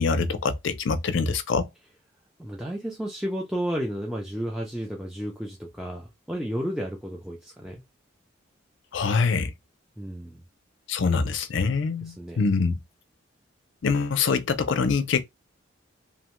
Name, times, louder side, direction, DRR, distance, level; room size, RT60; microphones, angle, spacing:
voice 1, 0.0-1.7 8.9-9.5 10.9-12.8 13.8-15.2, left 4 dB, 65° left, 0.4 m, -24 dB
voice 2, 2.4-7.8 10.0-10.4 12.0-12.5, equal, 5° right, 0.3 m, -32 dB
2.7 x 2.1 x 2.9 m
head